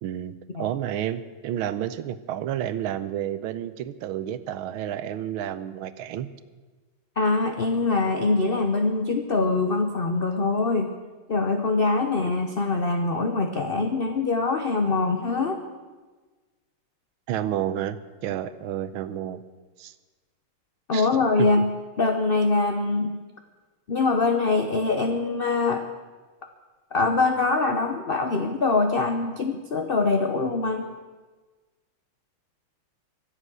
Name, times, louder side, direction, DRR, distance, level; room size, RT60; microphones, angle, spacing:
voice 1, 0.0-6.3 17.3-19.4 19.8-19.9 20.9-21.1 21.4-21.6, right 11 dB, 80° right, 14 dB, 1.5 m, -30 dB
voice 2, 7.2-10.9 11.3-15.6 20.9-21.7 22.0-23.2 23.9-25.8 26.9-30.9, left 3 dB, 50° left, 5 dB, 0.7 m, -23 dB
24.0 x 8.2 x 6.2 m, 1.3 s
omnidirectional pair, 2.3 m